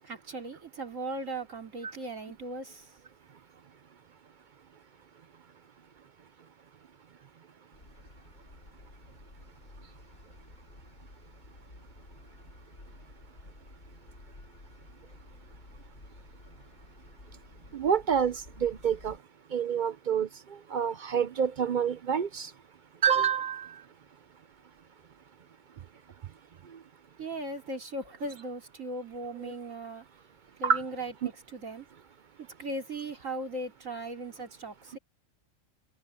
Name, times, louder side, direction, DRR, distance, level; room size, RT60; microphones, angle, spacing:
voice 1, 0.0-2.9 27.2-30.1 30.6-31.9 32.4-35.0, right 2 dB, 80° right, 3.5 m, -38 dB
sound 1, 7.7-19.2, left 2 dB, 70° left, 3.9 m, -52 dB
voice 2, 17.7-19.2 19.5-20.3 20.7-22.5 23.0-23.7 29.4-29.5 30.6-30.8, right 7 dB, 55° right, 0.5 m, -27 dB
open air
omnidirectional pair, 1.3 m